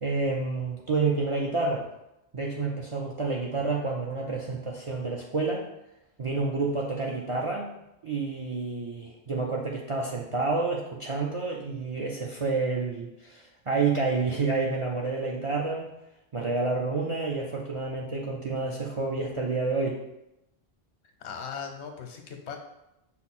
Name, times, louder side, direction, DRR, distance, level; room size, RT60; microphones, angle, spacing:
voice 1, 0.0-1.8 2.3-5.6 6.2-7.7 8.0-15.9 16.3-20.0, right 3 dB, 50° right, -2 dB, 0.4 m, -29 dB
voice 2, 21.2-22.6, left 7 dB, 90° left, 4 dB, 1.0 m, -38 dB
5.7 x 2.0 x 4.1 m, 0.88 s
omnidirectional pair, 1.1 m